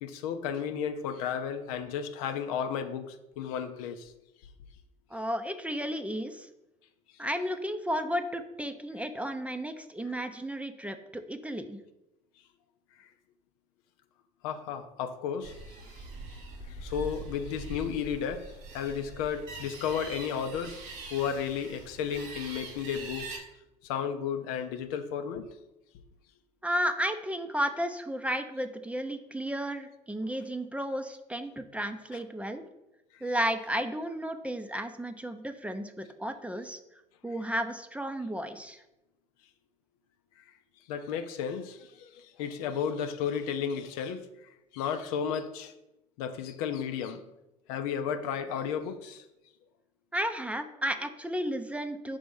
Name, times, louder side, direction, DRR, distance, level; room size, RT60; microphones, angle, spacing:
voice 1, 0.0-4.1 13.0-13.1 14.4-15.6 16.7-20.8 21.1-23.4 23.8-25.5 32.1-32.2 33.1-33.2 40.9-45.7 46.2-47.2 47.7-49.2, left 7 dB, 75° left, 0.5 m, -33 dB
voice 2, 5.1-6.5 7.2-11.8 26.6-32.6 33.2-36.8 37.2-38.8 50.1-52.2, equal, 5° right, 0.6 m, -33 dB
sound 1, 15.4-23.4, right 2 dB, 70° right, 1.3 m, -43 dB
5.1 x 3.5 x 5.3 m
hypercardioid pair, 70°, 18 cm